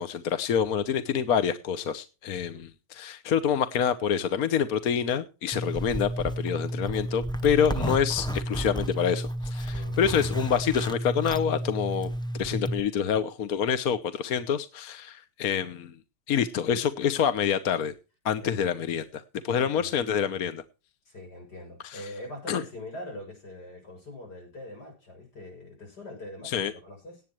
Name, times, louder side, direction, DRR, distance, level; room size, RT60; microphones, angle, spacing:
voice 1, 0.0-12.1 12.4-15.9 16.3-17.9 18.2-20.6 21.8-22.0 22.5-22.6 26.4-26.7, left 8 dB, 65° left, 11 dB, 1.4 m, -27 dB
Zipper (clothing), 5.5-12.8, equal, 5° left, 0.5 m, -31 dB
voice 2, 9.7-10.1 18.3-18.7 19.5-19.9 21.0-27.2, left 1 dB, 85° left, 2 dB, 7.9 m, -43 dB
18.0 x 9.7 x 3.1 m, 0.32 s
omnidirectional pair, 1.7 m